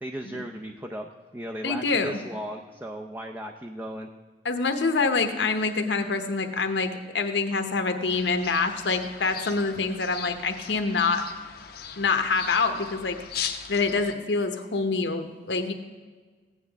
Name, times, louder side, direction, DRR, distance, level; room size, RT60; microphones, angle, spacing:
voice 1, 0.0-4.1, equal, 10° right, 2 dB, 0.5 m, -36 dB
voice 2, 1.6-2.1 4.4-11.2 12.0-13.2 13.7-15.7, left 4 dB, 75° left, 6 dB, 1.0 m, -26 dB
sound 1, 8.1-14.1, left 8 dB, 60° left, 0.7 m, -39 dB
15.5 x 9.8 x 3.5 m, 1.4 s
head